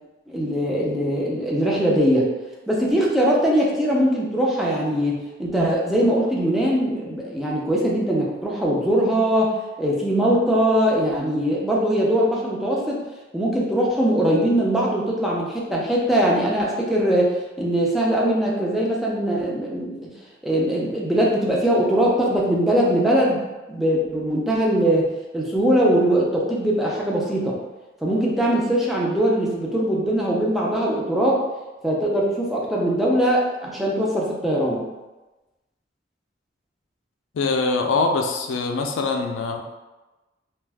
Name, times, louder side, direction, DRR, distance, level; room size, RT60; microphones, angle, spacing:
voice 1, 0.3-2.3 2.7-9.5 9.8-13.0 13.3-20.1 20.4-27.6 28.0-31.4 31.8-34.8, equal, ahead, -4 dB, 0.4 m, -21 dB
voice 2, 37.3-39.6, left 3 dB, 90° left, 4 dB, 0.4 m, -23 dB
2.4 x 2.2 x 3.3 m, 1.1 s
head